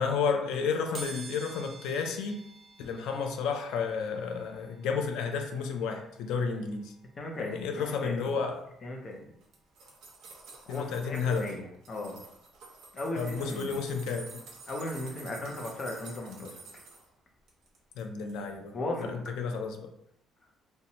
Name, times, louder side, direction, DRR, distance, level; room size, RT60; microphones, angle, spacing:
voice 1, 0.0-2.4 2.8-6.9 7.4-8.6 10.7-11.5 13.1-14.3 18.0-19.9, left 5 dB, 85° left, 5 dB, 0.3 m, -32 dB
sound 1, 0.9-11.6 12.1-12.2 13.3-13.4 13.7-15.8 16.2-18.8 19.1-19.3 19.6-19.7, right 3 dB, 35° right, 0.4 m, -52 dB
voice 2, 7.2-8.4 8.8-9.2 10.7-12.2 12.9-13.7 14.7-16.5 18.7-19.3, left 2 dB, 30° left, 1 dB, 0.5 m, -37 dB
sound 2, 9.4-11.5 11.8-17.0 17.5-18.0 18.3-18.4, right 3 dB, 85° right, 0.8 m, -49 dB
2.6 x 2.1 x 2.8 m, 0.76 s
cardioid pair, 170°, 0 cm